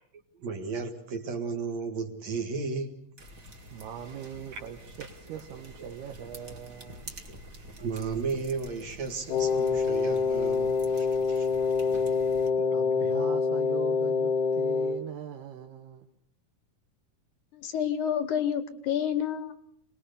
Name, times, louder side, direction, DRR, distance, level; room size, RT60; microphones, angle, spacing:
voice 1, 0.4-3.0 4.5-4.6 5.8-5.9 7.8-11.5 12.6-12.7, right 4 dB, 50° right, 6 dB, 2.8 m, -34 dB
sound 1, 3.2-12.5, right 1 dB, 30° right, 1.9 m, -47 dB
voice 2, 3.7-7.1 12.0-12.1 12.7-16.1, right 10 dB, 80° right, 4 dB, 3.1 m, -41 dB
Wind instrument woodwind instrument, 9.3-15.0, left 5 dB, 90° left, 3.3 m, -26 dB
voice 3, 17.5-19.5, left 9 dB, 65° left, 11 dB, 2.2 m, -29 dB
27.0 x 20.5 x 6.8 m, 0.72 s
omnidirectional pair, 4.5 m